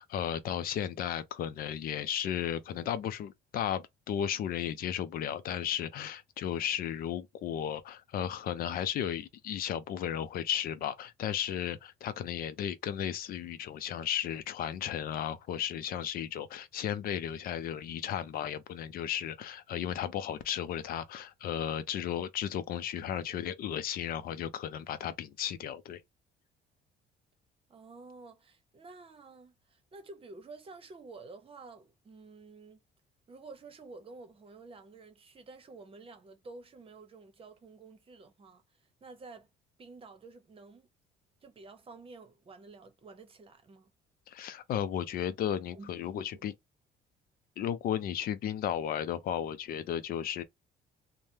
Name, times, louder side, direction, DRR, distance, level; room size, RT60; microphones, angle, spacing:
voice 1, 0.0-26.0 44.3-46.5 47.6-50.4, left 9 dB, 60° left, 0.5 m, -34 dB
voice 2, 27.7-32.8 33.3-39.5 39.8-40.9 41.4-43.9 45.7-46.5, right 3 dB, 35° right, 0.9 m, -51 dB
3.3 x 2.1 x 2.7 m
cardioid pair, 110°, 17 cm